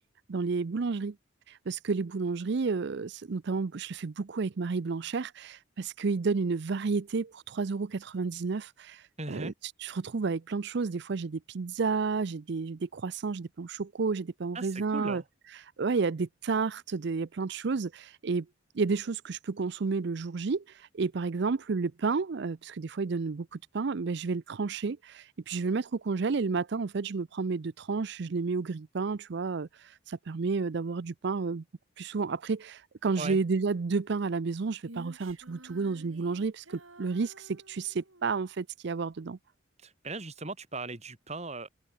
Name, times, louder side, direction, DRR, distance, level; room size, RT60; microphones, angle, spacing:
voice 1, 0.3-1.2 1.5-9.5 9.8-15.2 15.5-18.5 18.7-31.6 32.0-39.4, right 4 dB, 55° right, 0.5 m, -31 dB
voice 2, 9.2-9.5 14.5-15.2 33.2-33.4 39.8-41.7, right 2 dB, 35° right, 3.3 m, -38 dB
Female singing, 34.8-38.3, right 1 dB, 85° right, 7.3 m, -52 dB
head